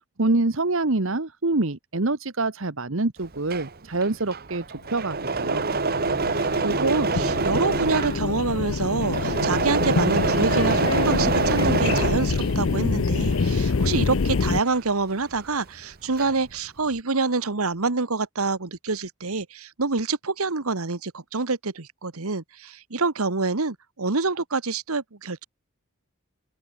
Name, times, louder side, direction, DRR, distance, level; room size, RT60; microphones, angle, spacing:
voice 1, 0.2-5.6, right 2 dB, 60° right, 1.3 m, -25 dB
Engine / Mechanisms, 3.2-12.8 13.2-15.5 15.8-16.5, right 4 dB, 45° right, 1.1 m, -26 dB
sound 1, 5.0-14.6, left 4 dB, 65° left, 0.6 m, -26 dB
voice 2, 6.3-25.5, right 3 dB, 80° right, 1.5 m, -27 dB
Fireworks, 12.0-15.1, left 3 dB, 85° left, 5.6 m, -48 dB
open air
head